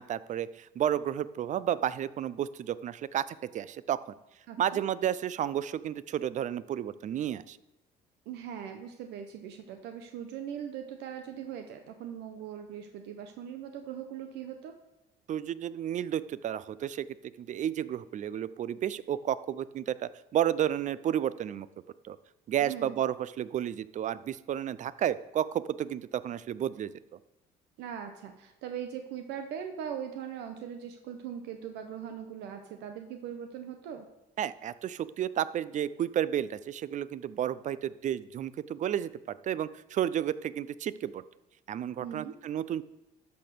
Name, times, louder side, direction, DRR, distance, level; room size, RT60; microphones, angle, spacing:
voice 1, 0.0-4.0 4.6-7.6 15.3-17.1 17.4-21.7 22.0-22.2 22.5-27.2 34.4-41.2 41.7-42.8, right 10 dB, 45° right, 16 dB, 0.5 m, -32 dB
voice 2, 4.5-4.8 8.3-14.8 22.6-22.9 27.8-34.1 42.0-42.4, right 8 dB, 90° right, 6 dB, 0.8 m, -40 dB
12.0 x 4.3 x 6.7 m, 0.94 s
cardioid pair, 110°, 17 cm